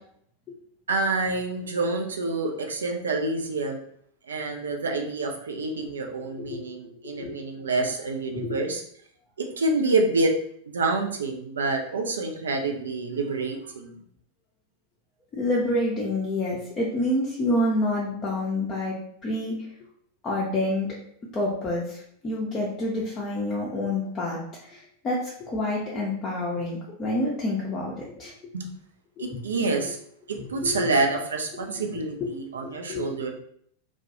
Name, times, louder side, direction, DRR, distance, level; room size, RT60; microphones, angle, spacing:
voice 1, 0.9-3.8 4.3-8.8 9.4-10.3 10.7-14.0 28.5-28.7 29.2-30.0 30.3-33.3, right 3 dB, 70° right, 3 dB, 0.4 m, -27 dB
voice 2, 6.3-7.3 8.3-8.7 15.3-19.7 20.2-20.9 21.3-28.3 29.2-29.4 30.4-30.9 31.6-31.8 32.2-32.3 32.6-33.2, left 1 dB, 25° left, -5 dB, 0.5 m, -28 dB
2.2 x 2.1 x 2.8 m, 0.67 s
figure-of-eight pair, 90°, 0 cm